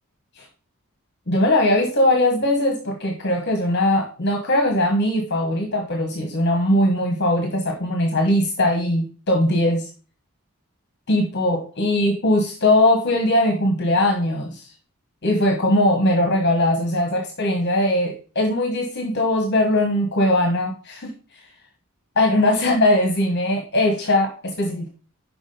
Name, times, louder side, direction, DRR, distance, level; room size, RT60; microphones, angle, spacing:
voice 1, 1.3-9.9 11.1-14.6 15.2-21.1 22.2-24.9, left 1 dB, 50° left, 2 dB, 1.3 m, -20 dB
6.0 x 5.0 x 5.3 m, 0.36 s
head